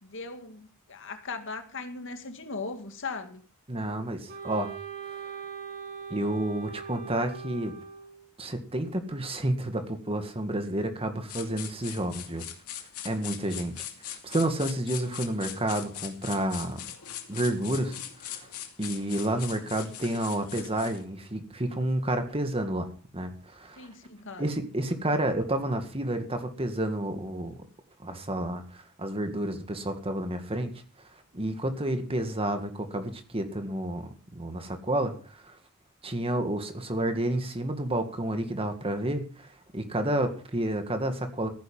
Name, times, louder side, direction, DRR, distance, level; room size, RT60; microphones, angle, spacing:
voice 1, 0.0-3.4 23.8-24.5, left 4 dB, 60° left, 1.9 m, -38 dB
voice 2, 3.7-4.7 6.1-7.7 8.4-12.4 13.0-13.8 14.2-16.8 17.3-18.0 18.3-18.5 18.8-22.9 23.1-23.9 24.4-27.5 28.0-30.7 31.3-35.5 36.0-41.5, right 1 dB, 25° right, 2.0 m, -30 dB
Wind instrument woodwind instrument, 4.3-8.3, right 6 dB, 45° right, 3.4 m, -41 dB
sound 1, 11.3-21.0, left 10 dB, 80° left, 2.6 m, -41 dB
15.0 x 10.0 x 5.6 m
head